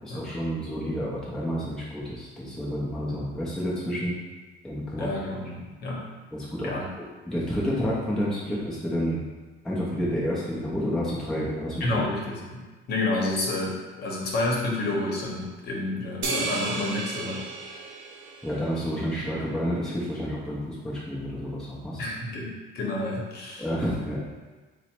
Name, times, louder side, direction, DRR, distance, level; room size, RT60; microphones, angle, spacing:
voice 1, 0.0-4.1 4.6-5.1 6.3-6.7 7.0-9.2 9.6-12.0 18.4-22.0 23.6-24.2, equal, 5° left, -6 dB, 0.5 m, -30 dB
voice 2, 5.0-6.1 6.6-6.9 11.8-17.4 22.0-23.7, left 2 dB, 50° left, -2 dB, 0.8 m, -30 dB
sound 1, 16.2-18.9, right 3 dB, 70° right, 0.7 m, -33 dB
3.7 x 2.0 x 4.3 m, 1.3 s
cardioid pair, 175°, 21 cm